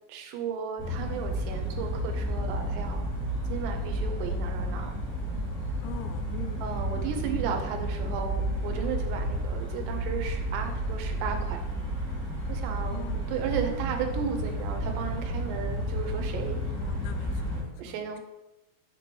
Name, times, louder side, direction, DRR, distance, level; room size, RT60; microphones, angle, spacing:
voice 1, 0.1-3.1 3.5-4.9 6.6-11.6 12.5-16.6 17.8-18.2, right 6 dB, 80° right, 4 dB, 2.9 m, -34 dB
sound 1, 0.8-17.6, right 1 dB, 5° right, 0.8 m, -31 dB
voice 2, 5.8-6.7 12.9-13.5 16.7-18.2, left 10 dB, 85° left, 7 dB, 2.8 m, -43 dB
7.4 x 3.0 x 6.1 m, 1.0 s
omnidirectional pair, 4.9 m